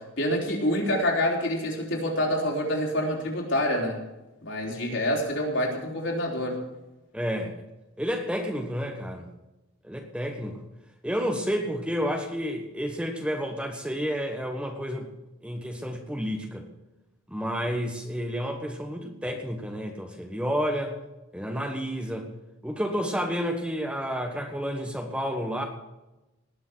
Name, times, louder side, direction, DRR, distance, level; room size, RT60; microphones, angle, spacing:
voice 1, 0.0-4.0 4.4-6.6, left 1 dB, 60° left, -1 dB, 4.2 m, -27 dB
voice 2, 7.1-7.5 8.0-9.3 9.8-10.6 11.0-15.1 15.4-16.7 17.3-21.0 21.3-22.3 22.6-25.7, equal, 5° right, 4 dB, 1.3 m, -30 dB
19.0 x 6.8 x 8.1 m, 1.0 s
head